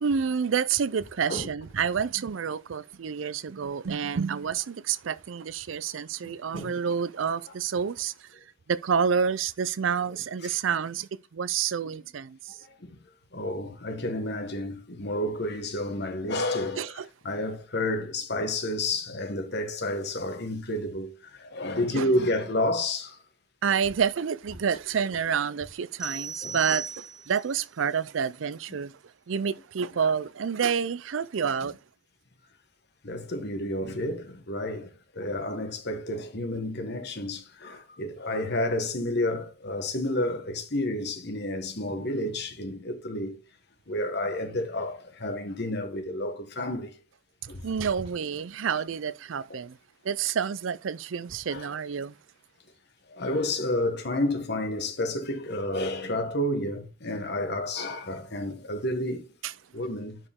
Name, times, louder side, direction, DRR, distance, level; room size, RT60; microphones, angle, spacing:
voice 1, 0.0-8.3 8.7-12.6 16.8-17.1 21.9-22.1 23.6-28.9 29.3-31.8 47.4-49.8 50.0-52.1 59.4-59.5, right 7 dB, 70° right, 0.5 m, -29 dB
voice 2, 6.2-6.7 10.4-10.5 12.6-13.0 13.3-16.9 17.2-23.2 26.4-26.6 30.0-30.1 33.0-43.4 43.9-47.0 47.5-47.6 49.5-49.6 51.5-51.7 53.1-59.2 59.7-60.2, left 1 dB, 55° left, 1.6 m, -30 dB
sound 1, 26.0-27.5, right 5 dB, ahead, 1.4 m, -36 dB
10.5 x 5.0 x 3.7 m
head